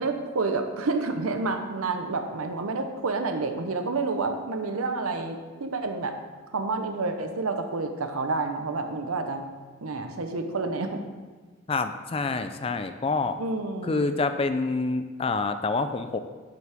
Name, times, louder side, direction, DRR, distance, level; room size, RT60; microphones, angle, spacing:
voice 1, 0.0-6.2 6.5-9.4 9.8-11.0 13.4-14.1, right 3 dB, 90° right, 6 dB, 0.8 m, -29 dB
voice 2, 11.7-13.4 13.9-16.2, left 3 dB, 25° left, 9 dB, 0.3 m, -27 dB
8.0 x 7.3 x 3.5 m, 1.3 s
head